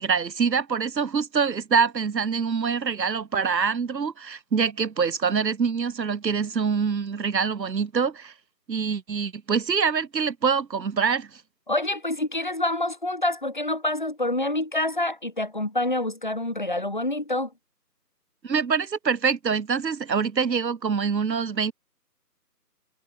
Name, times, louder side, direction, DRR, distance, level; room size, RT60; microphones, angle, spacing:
voice 1, 0.0-8.3 8.7-11.3 18.4-21.7, right 6 dB, 90° right, 1.1 m, -25 dB
voice 2, 11.7-17.5, left 1 dB, 30° left, 2.3 m, -27 dB
figure-of-eight pair, 180°, 49 cm